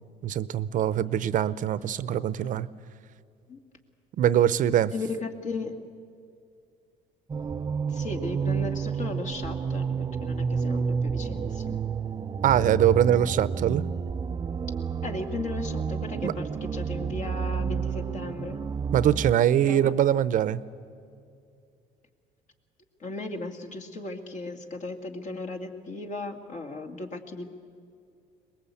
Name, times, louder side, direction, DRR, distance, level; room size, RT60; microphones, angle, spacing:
voice 1, 0.2-2.7 4.2-4.9 12.4-13.8 16.2-16.3 18.9-20.6, right 10 dB, 50° right, 17 dB, 0.8 m, -23 dB
voice 2, 4.9-5.7 7.9-11.8 15.0-18.6 19.6-19.9 23.0-27.5, left 3 dB, 50° left, 3 dB, 2.4 m, -36 dB
sound 1, 7.3-19.3, right 6 dB, 25° right, 0.5 m, -30 dB
23.0 x 20.5 x 8.5 m, 2.4 s
supercardioid pair, 95°, 17 cm